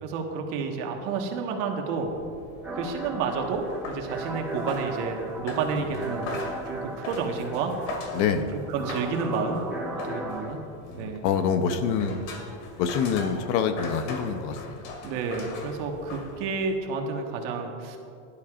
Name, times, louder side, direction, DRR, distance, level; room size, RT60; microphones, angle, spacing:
voice 1, 0.0-2.1 2.7-6.3 6.6-7.7 8.5-9.6 9.9-10.6 10.9-11.2 15.0-18.0, right 5 dB, 60° right, 2 dB, 1.6 m, -30 dB
sound 1, 1.9-16.8, left 3 dB, 70° left, 2.2 m, -41 dB
sound 2, 2.6-10.5, right 2 dB, 5° right, 2.6 m, -36 dB
voice 2, 8.1-8.5 10.9-12.2 12.8-14.8, left 6 dB, 50° left, 9 dB, 0.8 m, -26 dB
17.5 x 12.0 x 2.5 m, 2.6 s
supercardioid pair, 150°, 40 cm